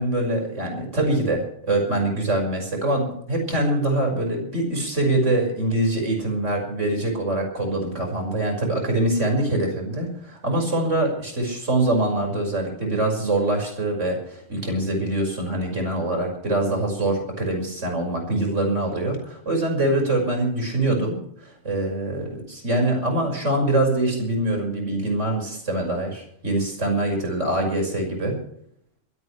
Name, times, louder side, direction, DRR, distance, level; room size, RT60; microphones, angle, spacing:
voice 1, 0.0-21.1 21.4-28.4, right 1 dB, 70° right, 2 dB, 6.3 m, -24 dB
22.5 x 17.5 x 3.4 m, 0.69 s
omnidirectional pair, 1.3 m